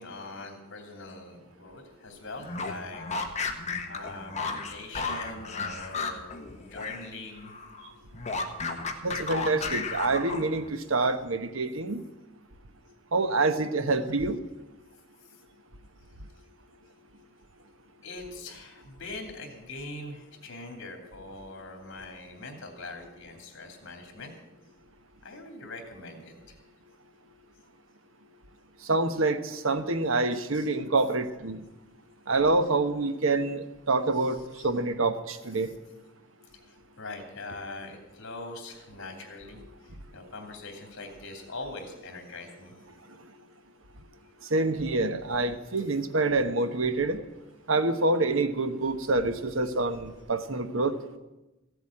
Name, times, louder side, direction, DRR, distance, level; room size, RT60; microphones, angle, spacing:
voice 1, 0.0-3.0 3.9-6.3 6.6-7.5 10.8-10.9 18.0-24.3 25.2-26.6 30.5-30.7 34.1-34.7 35.6-35.7 36.6-42.7, left 2 dB, 65° left, 4 dB, 3.0 m, -42 dB
sound 1, 2.4-7.1 7.4-10.7, left 4 dB, 35° left, 1.5 m, -34 dB
voice 2, 9.0-12.0 13.1-14.4 28.9-31.6 32.3-34.4 34.6-35.7 44.5-47.2 47.7-50.9, right 3 dB, 75° right, 10 dB, 1.1 m, -26 dB
15.0 x 8.1 x 8.6 m, 1.0 s
head